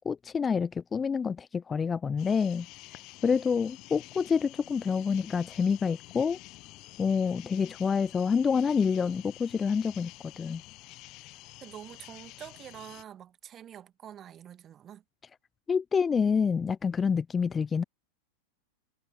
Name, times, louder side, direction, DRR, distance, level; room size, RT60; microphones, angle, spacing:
voice 1, 0.0-2.7 3.2-6.4 7.0-10.1 10.4-10.6 15.7-17.8, left 6 dB, 20° left, 0.4 m, -27 dB
sound 1, 2.2-13.0, left 21 dB, 40° left, 1.1 m, -49 dB
voice 2, 11.6-15.0, right 10 dB, 25° right, 1.9 m, -46 dB
figure-of-eight pair, 90°, 0 cm